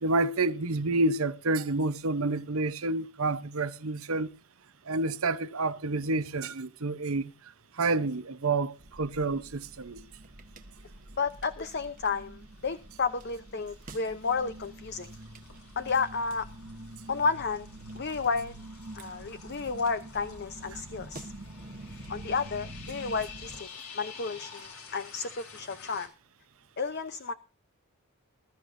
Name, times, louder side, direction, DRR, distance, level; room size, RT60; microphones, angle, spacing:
voice 1, 0.0-4.3 4.9-7.3 7.8-10.0, right 2 dB, 80° right, 0.9 m, -29 dB
sound 1, 8.8-23.6, right 1 dB, 40° right, 1.3 m, -46 dB
sound 2, 9.7-10.2 10.6-26.1, left 6 dB, 85° left, 4.1 m, -51 dB
voice 2, 11.2-15.1 15.8-16.5 17.1-17.7 17.9-18.5 19.0-21.3 22.1-23.7 23.9-26.1 26.8-27.3, left 5 dB, 50° left, 0.8 m, -32 dB
21.0 x 13.5 x 2.7 m
head